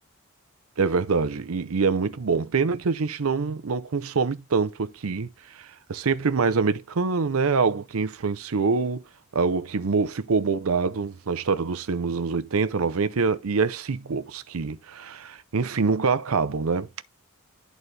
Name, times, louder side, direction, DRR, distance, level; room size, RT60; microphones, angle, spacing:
voice 1, 0.8-9.0 9.3-17.0, right 4 dB, 85° right, 0.6 m, -25 dB
11.0 x 4.1 x 3.2 m
head